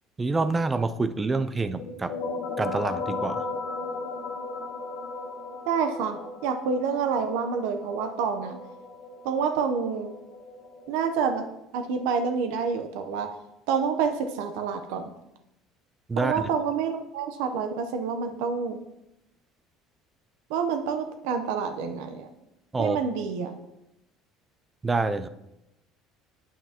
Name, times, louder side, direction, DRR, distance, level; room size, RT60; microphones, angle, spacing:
voice 1, 0.2-2.2 2.6-3.4 16.1-16.5 22.7-23.0 24.8-25.3, right 3 dB, 15° right, 12 dB, 0.3 m, -27 dB
sound 1, 1.8-11.2, left 3 dB, 50° left, 1.3 m, -36 dB
voice 2, 5.7-8.6 9.2-10.1 10.9-11.4 11.7-13.3 13.7-15.1 16.2-18.8 20.5-22.3 22.8-23.5, right 6 dB, 80° right, 6 dB, 0.7 m, -28 dB
9.3 x 8.2 x 2.9 m, 0.89 s
cardioid pair, 170°, 0 cm